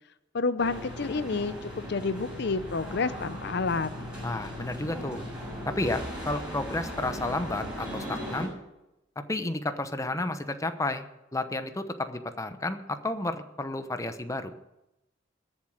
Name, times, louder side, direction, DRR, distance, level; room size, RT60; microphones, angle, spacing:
voice 1, 0.3-3.9, left 4 dB, 60° left, 13 dB, 0.6 m, -29 dB
sound 1, 0.6-8.5, equal, 5° right, 7.2 m, -38 dB
voice 2, 4.2-5.3 5.7-8.5 9.2-11.0 11.3-14.5, left 2 dB, 15° left, 9 dB, 0.9 m, -31 dB
21.5 x 7.4 x 6.4 m, 0.94 s
head